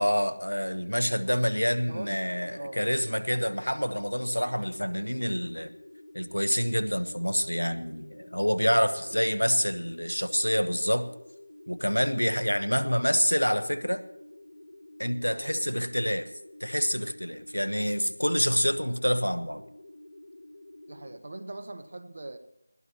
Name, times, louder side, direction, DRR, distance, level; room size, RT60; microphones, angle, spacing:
voice 1, 0.0-5.7 6.1-11.1 11.7-14.0 15.0-16.3 16.6-19.6, equal, 85° left, 12 dB, 1.2 m, -27 dB
voice 2, 1.0-1.3 1.9-2.2 2.5-3.0 8.7-9.3 15.3-15.7 17.5-17.7 20.9-22.4, right 2 dB, 45° right, 8 dB, 1.6 m, -42 dB
sound 1, 1.9-21.2, left 1 dB, 55° left, 2.5 m, -50 dB
20.5 x 15.0 x 3.0 m, 0.80 s
figure-of-eight pair, 165°, 0 cm